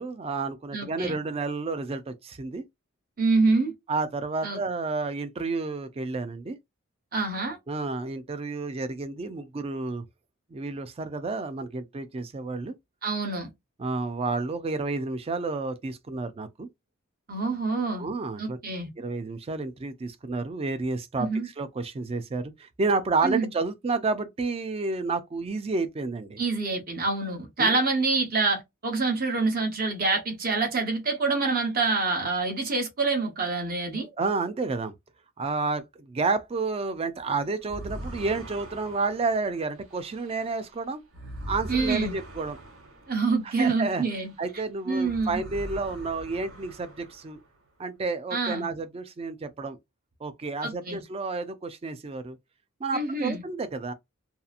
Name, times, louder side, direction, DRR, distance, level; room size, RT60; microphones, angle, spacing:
voice 1, 0.0-2.6 3.9-6.6 7.7-10.0 10.5-12.7 13.8-16.7 17.9-18.6 19.0-21.3 21.6-26.4 27.6-27.8 34.0-34.9 35.4-41.0 41.5-42.6 43.6-44.0 44.4-47.4 47.8-49.8 50.2-52.4 52.8-53.9, right 3 dB, 30° right, 0.4 m, -30 dB
voice 2, 0.7-1.2 3.2-3.7 4.4-4.6 7.1-7.6 13.0-13.5 17.3-18.1 18.4-18.9 21.2-21.5 23.2-23.5 26.4-34.1 41.7-42.2 43.1-44.3 44.9-45.4 48.3-48.7 50.6-51.0 52.9-53.4, right 3 dB, 45° right, 0.8 m, -26 dB
sound 1, 37.6-44.5 44.9-47.6, right 1 dB, 85° right, 1.1 m, -42 dB
2.7 x 2.4 x 2.4 m
head